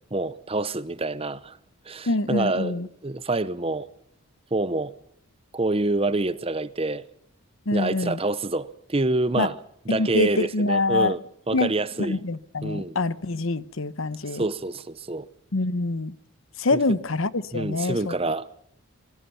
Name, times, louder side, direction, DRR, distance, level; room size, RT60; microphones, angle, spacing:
voice 1, 0.1-1.6 1.9-3.9 4.5-4.9 5.5-7.0 7.7-9.5 9.9-11.2 11.5-12.2 12.6-13.0 14.3-15.3 16.7-16.8 17.5-18.5, right 2 dB, 25° right, 0.8 m, -27 dB
voice 2, 2.1-2.9 7.7-8.2 9.4-9.5 9.9-11.2 11.5-14.4 15.5-16.1 16.6-18.1, left 2 dB, 60° left, 1.0 m, -25 dB
26.5 x 22.5 x 5.7 m
head